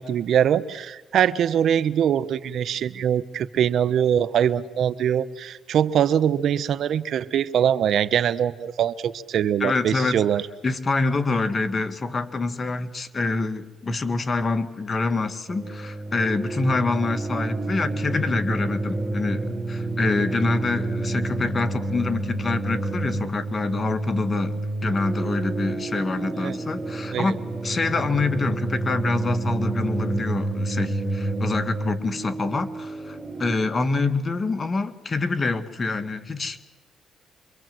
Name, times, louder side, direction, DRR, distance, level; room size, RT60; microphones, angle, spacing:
voice 1, 0.0-10.4 26.4-26.6 27.1-27.3, right 9 dB, 70° right, 14 dB, 1.0 m, -23 dB
voice 2, 9.6-10.2 10.6-36.6, left 3 dB, 35° left, 9 dB, 1.9 m, -26 dB
sound 1, 15.5-33.5, right 2 dB, 30° right, 3.1 m, -29 dB
27.0 x 23.5 x 7.8 m, 1.1 s
cardioid pair, 90°, 0 cm